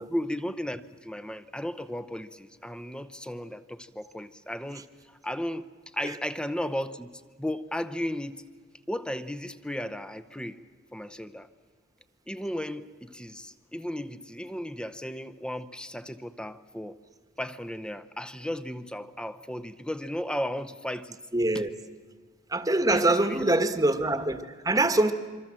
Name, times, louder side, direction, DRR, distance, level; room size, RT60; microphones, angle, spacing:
voice 1, 0.0-5.7 5.9-7.1 7.4-8.4 8.9-10.6 10.9-11.5 12.3-17.0 17.4-21.2 21.5-21.6 22.9-23.5, left 1 dB, 5° left, 0.8 m, -35 dB
voice 2, 21.3-21.7 22.5-25.1, right 2 dB, 20° right, 1.3 m, -24 dB
27.0 x 24.5 x 7.6 m
head